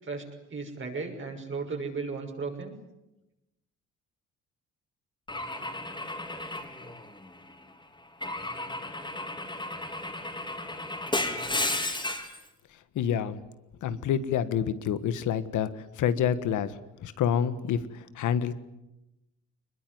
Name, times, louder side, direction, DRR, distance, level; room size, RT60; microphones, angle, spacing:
voice 1, 0.0-2.7, right 4 dB, 40° right, 3 dB, 6.2 m, -35 dB
Car / Engine / Glass, 5.3-7.5 8.2-12.4, left 2 dB, 15° left, 4.0 m, -33 dB
voice 2, 12.9-13.4 13.8-18.5, left 8 dB, 80° left, 13 dB, 1.6 m, -28 dB
23.5 x 21.0 x 9.5 m, 0.95 s
cardioid pair, 90°, 30 cm